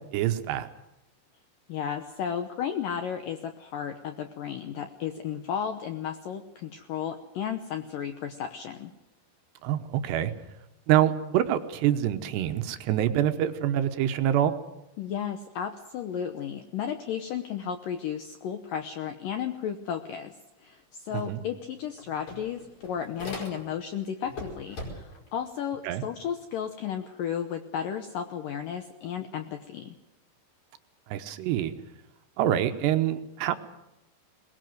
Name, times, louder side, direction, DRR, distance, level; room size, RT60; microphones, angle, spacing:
voice 1, 0.1-0.7 9.6-10.3 10.9-14.6 21.1-21.4 25.8-26.0 31.1-31.7 32.4-33.5, right 11 dB, 75° right, 9 dB, 3.0 m, -26 dB
voice 2, 1.7-8.9 15.0-20.3 20.6-30.0, left 8 dB, 75° left, 7 dB, 2.0 m, -34 dB
sound 1, 21.2-21.3 21.6-23.9 24.2-25.3, left 2 dB, 40° left, 6.2 m, -40 dB
22.0 x 20.0 x 7.8 m, 0.92 s
omnidirectional pair, 5.2 m